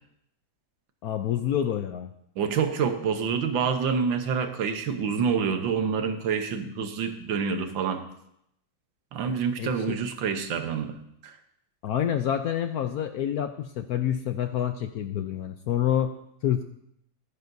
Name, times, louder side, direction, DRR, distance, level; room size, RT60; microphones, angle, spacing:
voice 1, 1.0-2.1 9.6-9.7 11.8-16.1 16.4-16.6, left 10 dB, 70° left, 8 dB, 0.9 m, -27 dB
voice 2, 2.4-8.0 9.1-11.0 11.2-11.4, right 6 dB, 80° right, 7 dB, 1.7 m, -27 dB
19.0 x 9.8 x 2.7 m, 0.76 s
omnidirectional pair, 2.0 m